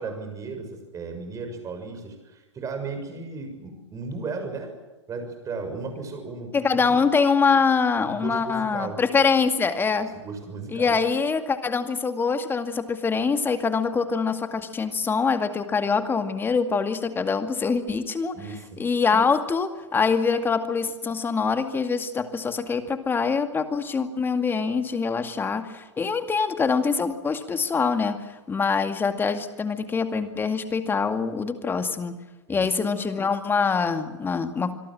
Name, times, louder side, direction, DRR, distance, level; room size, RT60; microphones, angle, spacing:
voice 1, 0.0-4.7 5.1-7.0 8.0-9.0 10.1-11.0 18.3-18.8 32.5-32.7, right 4 dB, 20° right, 6 dB, 6.7 m, -35 dB
voice 2, 6.5-10.1 10.7-18.4 18.8-32.2 32.5-34.7, left 5 dB, 15° left, 8 dB, 2.2 m, -24 dB
26.5 x 22.0 x 7.6 m, 1.1 s
figure-of-eight pair, 95°, 15 cm